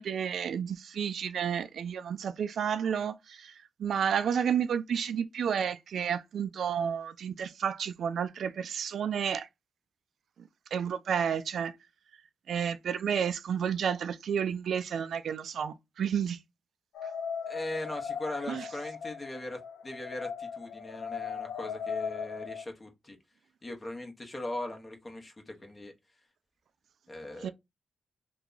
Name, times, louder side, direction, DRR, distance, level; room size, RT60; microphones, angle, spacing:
voice 1, 0.0-9.5 10.7-11.8 12.5-16.4 18.5-18.7 27.4-27.5, right 8 dB, 70° right, 0.3 m, -31 dB
sound 1, 16.9-22.6, left 6 dB, 90° left, 0.4 m, -38 dB
voice 2, 17.5-23.2 23.6-25.9 27.1-27.5, left 1 dB, 30° left, 1.0 m, -40 dB
2.9 x 2.2 x 3.8 m
cardioid pair, 65°, 0 cm